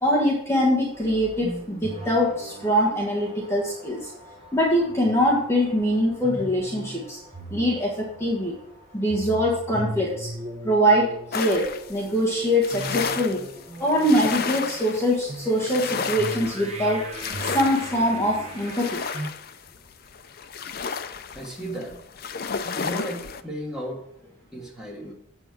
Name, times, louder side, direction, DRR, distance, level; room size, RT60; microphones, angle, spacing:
voice 1, 0.0-4.1 4.5-7.2 7.5-8.5 8.9-10.3 10.6-13.4 13.8-17.1 17.4-19.0, equal, 15° left, -4 dB, 1.5 m, -23 dB
sound 1, 0.9-19.3, right 1 dB, 30° right, 1.1 m, -39 dB
sound 2, 11.3-23.4, left 6 dB, 45° left, 0.5 m, -32 dB
voice 2, 21.3-22.0 22.8-24.0 24.5-25.1, equal, 5° right, -3 dB, 1.8 m, -34 dB
7.6 x 7.2 x 4.7 m, 0.74 s
head